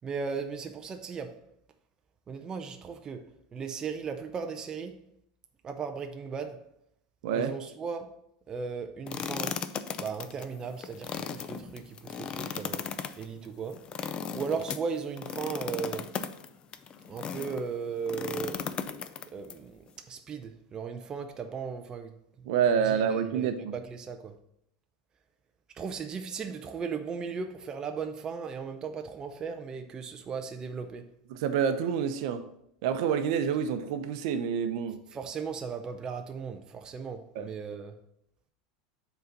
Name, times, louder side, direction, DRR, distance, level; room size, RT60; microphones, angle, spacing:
voice 1, 0.0-1.4 2.3-3.3 3.5-5.0 5.6-6.6 7.3-8.1 8.5-9.6 10.0-12.8 13.2-13.8 14.3-16.1 17.1-18.7 19.3-22.5 22.8-24.4 25.7-31.1 35.1-38.0, right 5 dB, 20° right, 0.5 m, -37 dB
voice 2, 7.2-7.5 22.4-23.7 31.3-32.5 32.8-35.0 37.3-37.5, right 7 dB, 65° right, 0.7 m, -28 dB
sound 1, 9.1-17.6 18.1-19.5, left 7 dB, 30° left, 0.4 m, -36 dB
6.9 x 4.0 x 5.2 m
supercardioid pair, 145°, 3 cm